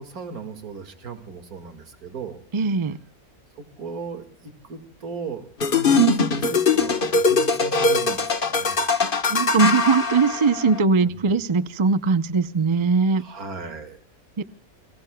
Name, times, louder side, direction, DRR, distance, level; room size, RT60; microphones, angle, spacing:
voice 1, 0.0-2.4 3.6-8.8 11.0-11.1 13.2-14.0, right 4 dB, 75° right, 8 dB, 2.6 m, -37 dB
voice 2, 2.5-3.0 9.3-13.2 14.4-14.5, right 4 dB, 35° right, 14 dB, 0.5 m, -20 dB
sound 1, 5.6-10.8, left 3 dB, 40° left, 1.3 m, -21 dB
30.0 x 20.5 x 2.3 m, 0.43 s
omnidirectional pair, 1.6 m